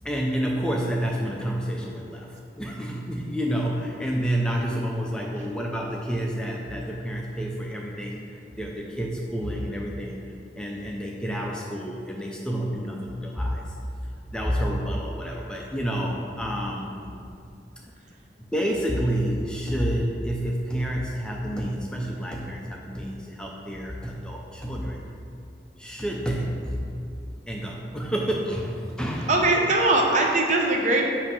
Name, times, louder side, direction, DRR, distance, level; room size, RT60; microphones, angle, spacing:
voice 1, 0.0-16.9 17.8-17.9 18.5-25.0 25.8-26.9 27.5-29.3, equal, 5° left, -2 dB, 0.4 m, -29 dB
voice 2, 29.3-31.0, right 2 dB, 45° right, 0 dB, 0.7 m, -21 dB
7.6 x 2.7 x 5.5 m, 2.5 s
head